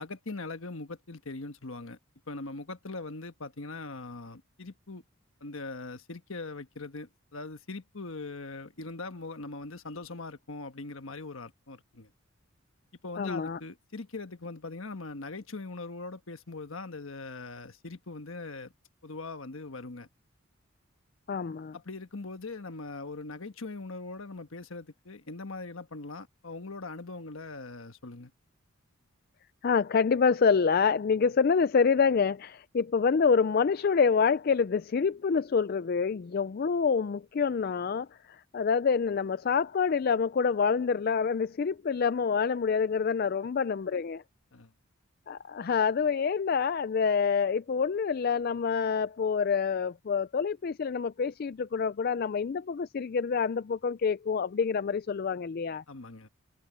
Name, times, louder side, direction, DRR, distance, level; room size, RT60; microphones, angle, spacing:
voice 1, 0.0-2.0 2.3-5.0 5.4-12.1 13.0-18.7 19.0-20.1 21.7-28.3 44.5-44.7 55.9-56.3, left 3 dB, 70° left, 1.3 m, -41 dB
voice 2, 13.2-13.6 21.3-21.8 29.6-44.2 45.3-55.8, left 5 dB, 45° left, 0.3 m, -27 dB
head